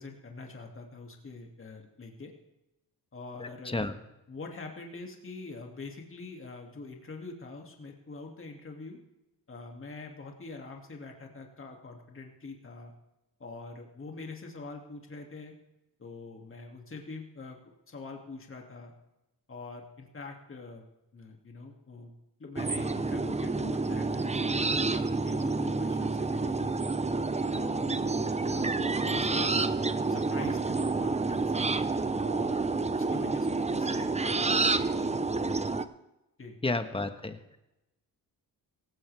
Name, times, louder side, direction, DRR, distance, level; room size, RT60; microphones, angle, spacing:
voice 1, 0.0-2.3 3.1-3.8 4.3-9.0 9.5-12.9 13.4-15.5 16.0-17.6 17.9-18.9 19.5-20.9 21.1-22.1 22.4-26.8 27.5-31.6 32.2-35.4 36.4-36.6, left 3 dB, 30° left, 1 dB, 2.6 m, -44 dB
voice 2, 3.4-3.9 36.6-37.6, left 2 dB, 15° left, 9 dB, 1.4 m, -32 dB
sound 1, 22.6-35.8, right 3 dB, 15° right, 0.8 m, -29 dB
17.5 x 16.5 x 3.5 m, 0.93 s
cardioid pair, 80°, 39 cm